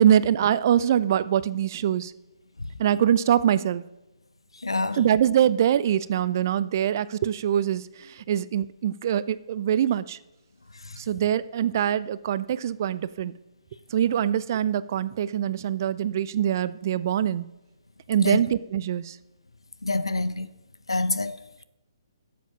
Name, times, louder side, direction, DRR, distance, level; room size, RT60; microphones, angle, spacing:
voice 1, 0.0-2.1 2.8-3.8 4.9-10.2 11.0-13.3 13.9-17.5 18.1-19.2, right 10 dB, 40° right, 0.4 m, -23 dB
voice 2, 4.6-5.0 18.2-18.4 19.8-20.5 20.9-21.4, left 2 dB, 80° left, 0.7 m, -26 dB
12.0 x 7.3 x 5.8 m
figure-of-eight pair, 135°, 3 cm